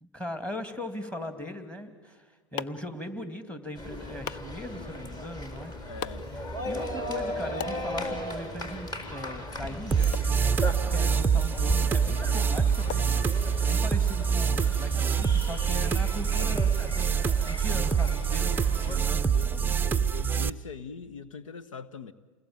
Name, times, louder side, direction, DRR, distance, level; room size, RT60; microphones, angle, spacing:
voice 1, 0.0-5.7 6.6-10.1 10.7-13.2 13.7-16.7 17.5-19.6, left 1 dB, 5° left, 2.6 m, -39 dB
sound 1, 1.9-13.8, left 9 dB, 45° left, 0.9 m, -45 dB
sound 2, 3.8-19.0, left 1 dB, 25° left, 4.1 m, -37 dB
voice 2, 5.8-6.3 19.3-22.1, left 5 dB, 75° left, 1.3 m, -42 dB
sound 3, 9.9-20.5, right 6 dB, 10° right, 0.7 m, -25 dB
29.0 x 20.5 x 9.0 m
hypercardioid pair, 105°, 17 cm